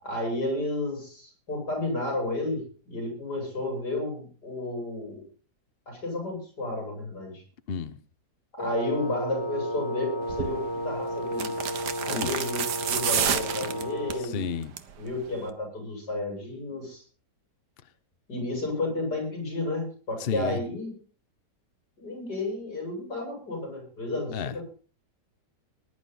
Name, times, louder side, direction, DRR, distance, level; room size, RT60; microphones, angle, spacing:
voice 1, 0.0-5.2 5.9-7.4 8.5-11.5 12.0-14.5 15.0-17.0 18.3-20.9 22.0-24.7, left 2 dB, 65° left, 8.4 m, -32 dB
Wind instrument woodwind instrument, 8.6-14.4, equal, 15° left, 1.3 m, -33 dB
sound 1, 10.3-10.5 11.3-14.2 14.6-15.0 15.2-15.3, right 8 dB, 75° right, 1.7 m, -29 dB
voice 2, 14.3-14.7 20.2-20.6 24.3-24.5, left 6 dB, 45° left, 0.8 m, -31 dB
20.0 x 11.0 x 4.1 m
omnidirectional pair, 1.9 m